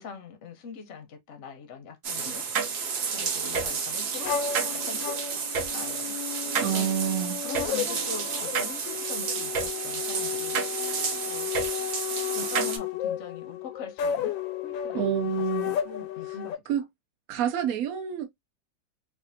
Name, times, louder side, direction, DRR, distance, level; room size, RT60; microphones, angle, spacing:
voice 1, 0.0-2.5 3.1-5.2 5.7-6.1 6.7-6.9 7.4-10.6 11.3-11.8 12.3-14.4 14.6-15.3 15.6-16.6, left 5 dB, 55° left, 0.9 m, -42 dB
sound 1, 2.0-12.8, right 5 dB, 55° right, 1.0 m, -30 dB
sound 2, 4.2-16.6, left 9 dB, 90° left, 1.4 m, -33 dB
voice 2, 6.6-7.4 14.9-15.8 16.3-16.4 16.7-16.8 17.3-18.3, right 10 dB, 75° right, 0.8 m, -28 dB
3.3 x 2.5 x 2.7 m
omnidirectional pair, 2.0 m